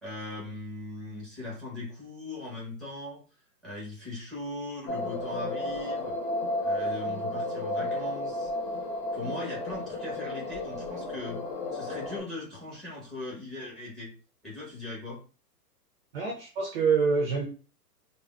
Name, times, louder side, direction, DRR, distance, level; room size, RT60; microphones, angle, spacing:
voice 1, 0.0-3.2 3.6-6.1 6.6-8.5 9.1-11.4 11.7-14.1 14.4-15.2, left 2 dB, ahead, -4 dB, 0.9 m, -39 dB
sound 1, 4.9-12.2, left 1 dB, 65° left, 1.0 m, -32 dB
voice 2, 16.1-17.5, right 5 dB, 40° right, 0 dB, 0.6 m, -26 dB
3.5 x 2.1 x 2.3 m, 0.37 s
hypercardioid pair, 130°, 49 cm